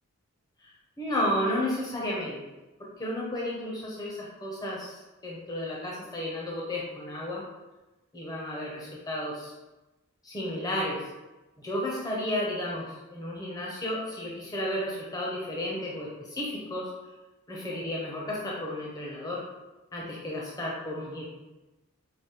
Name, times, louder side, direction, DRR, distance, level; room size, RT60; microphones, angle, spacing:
voice 1, 1.0-2.4 3.0-7.4 8.1-9.5 10.2-11.1 11.6-16.9 17.5-19.4 19.9-21.2, left 1 dB, 15° left, -5 dB, 0.7 m, -32 dB
4.8 x 2.6 x 3.0 m, 1.1 s
head